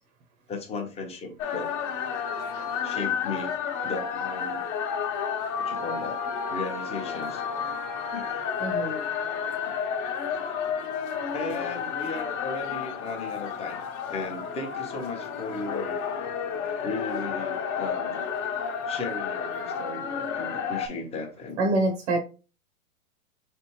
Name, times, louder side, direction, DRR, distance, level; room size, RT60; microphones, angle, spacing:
voice 1, 0.5-1.7 2.8-3.5 3.8-4.6 5.6-6.2 6.5-7.4 8.1-8.5 9.2-9.7 11.3-13.8 14.1-16.0 16.8-18.3 18.9-21.6, left 3 dB, 15° left, 0.9 m, -36 dB
sound 1, 1.4-20.9, left 7 dB, 35° left, 1.1 m, -31 dB
voice 2, 8.6-9.1 21.6-22.2, right 2 dB, 50° right, 1.1 m, -25 dB
5.0 x 3.4 x 2.9 m
hypercardioid pair, 130°, 44 cm